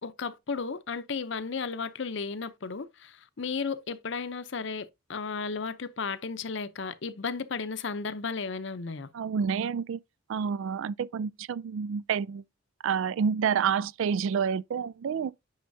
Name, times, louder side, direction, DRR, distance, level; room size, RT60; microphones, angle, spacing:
voice 1, 0.0-9.1, left 5 dB, 55° left, 0.6 m, -34 dB
voice 2, 9.1-10.0 10.3-12.4 12.8-15.3, right 7 dB, 65° right, 0.3 m, -28 dB
9.5 x 5.6 x 2.7 m
head